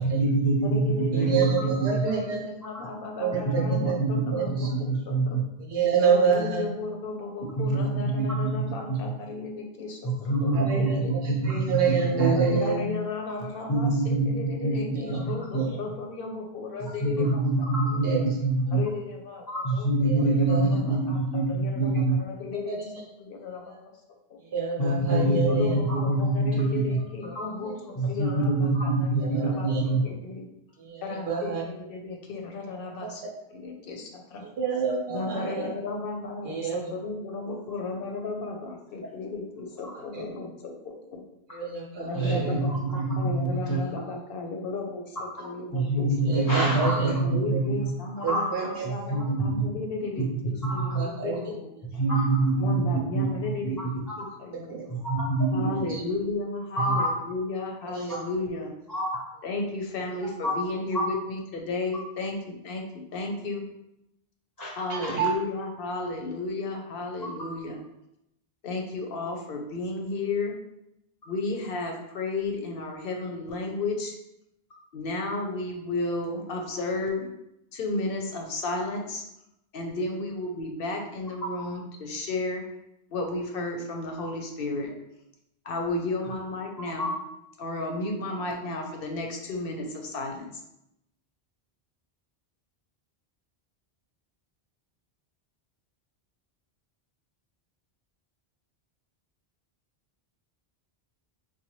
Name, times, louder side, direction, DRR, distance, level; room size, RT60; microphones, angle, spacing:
voice 1, 0.0-2.2 3.4-5.4 7.6-8.5 8.9-9.1 10.0-12.6 13.7-15.6 16.8-18.8 19.5-22.2 24.8-27.4 28.0-30.0 42.1-43.8 45.4-47.9 48.2-49.6 50.2-50.3 50.6-51.1 52.0-54.3 55.0-55.7 56.8-57.1 58.1-58.2 58.9-59.2 60.4-60.5 60.9-61.0 64.6-64.7 65.0-65.2 67.2-67.3 81.4-81.5 86.8-87.1, right 2 dB, 25° left, -5 dB, 0.6 m, -26 dB
voice 2, 0.6-5.4 6.0-11.4 12.2-17.4 17.9-18.0 18.7-19.4 19.7-19.9 20.2-21.2 21.5-22.8 23.2-23.7 25.2-29.7 30.0-30.5 31.0-33.2 33.5-34.4 35.1-41.2 42.0-46.3 47.2-51.7 52.6-54.7 55.5-58.7 59.4-62.8 63.1-63.6 64.8-67.8 68.6-70.6 71.3-74.1 74.9-77.3 77.7-79.2 79.7-82.6 83.1-84.9 85.6-87.1 87.6-90.5, left 3 dB, 65° left, 2 dB, 0.7 m, -34 dB
voice 3, 1.1-2.4 3.2-4.0 4.3-4.5 5.7-6.7 10.6-11.0 11.4-12.8 15.5-15.7 18.0-18.2 20.1-20.2 20.5-20.6 22.7-22.8 23.7-23.8 24.5-25.8 29.3-29.8 30.9-31.6 33.2-33.3 34.6-35.7 36.4-36.8 40.1-40.2 41.5-42.6 46.3-47.1 48.2-48.9 51.0-51.4 58.0-58.2 64.9-65.3, right 6 dB, 70° right, -1 dB, 0.8 m, -27 dB
3.9 x 2.2 x 3.0 m, 0.85 s
omnidirectional pair, 1.1 m